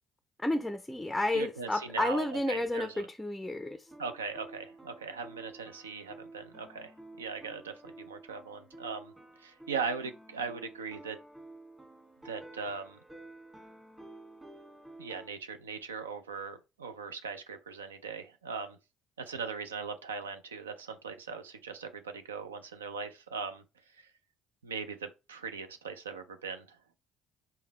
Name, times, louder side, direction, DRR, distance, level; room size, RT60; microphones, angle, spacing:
voice 1, 0.4-3.8, left 1 dB, 5° left, 0.4 m, -31 dB
voice 2, 1.3-3.1 4.0-6.9 7.2-9.1 9.4-11.2 12.2-13.0 15.0-18.8 19.3-23.6 24.6-26.6, right 5 dB, 90° right, 0.4 m, -39 dB
sound 1, 3.9-15.3, right 2 dB, 15° right, 1.5 m, -51 dB
4.2 x 3.7 x 2.9 m
hypercardioid pair, 55°, 0 cm